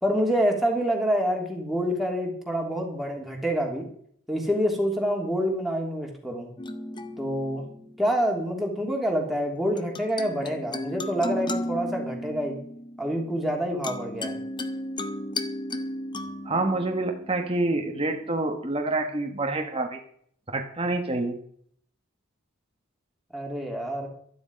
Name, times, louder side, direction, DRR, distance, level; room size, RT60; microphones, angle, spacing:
voice 1, 0.0-3.9 4.3-6.5 7.2-7.6 8.0-12.6 13.0-14.4 23.3-24.1, equal, ahead, 0 dB, 3.0 m, -27 dB
sound 1, 6.6-8.4 9.8-18.3, left 1 dB, 20° left, 1.0 m, -35 dB
voice 2, 16.4-20.0 20.5-21.4, right 2 dB, 25° right, 3 dB, 1.3 m, -27 dB
13.0 x 11.5 x 5.3 m, 0.62 s
head